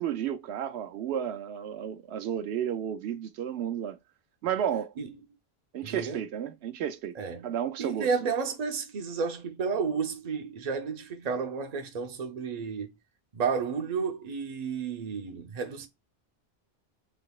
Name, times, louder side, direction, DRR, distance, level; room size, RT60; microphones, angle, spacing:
voice 1, 0.0-4.0 4.4-4.9 5.7-8.3, right 9 dB, 85° right, 0.9 m, -32 dB
voice 2, 5.8-6.2 7.2-7.5 7.8-12.9 13.3-15.9, right 5 dB, 45° right, 0.7 m, -32 dB
3.9 x 3.5 x 2.3 m
omnidirectional pair, 1.1 m